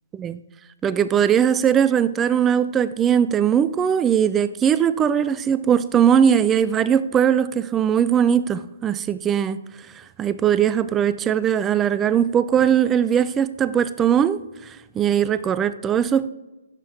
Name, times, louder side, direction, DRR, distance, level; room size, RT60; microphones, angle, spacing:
voice 1, 0.8-9.6 9.9-16.3, right 8 dB, 15° right, 0.3 m, -20 dB
10.5 x 7.5 x 4.3 m
figure-of-eight pair, 135°, 0 cm